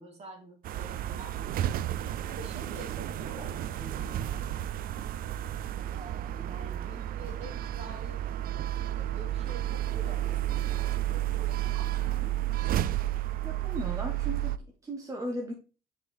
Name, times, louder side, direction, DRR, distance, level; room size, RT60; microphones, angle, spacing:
voice 1, 0.0-1.7 2.3-4.5 5.9-8.2 8.9-10.9 11.5-12.5, right 1 dB, 40° right, 1 dB, 2.8 m, -48 dB
sound 1, 0.6-14.6, right 12 dB, 60° right, 0.4 m, -32 dB
voice 2, 13.4-15.5, right 1 dB, 20° right, 0 dB, 1.3 m, -37 dB
7.3 x 5.3 x 3.5 m, 0.34 s
cardioid pair, 110°, 17 cm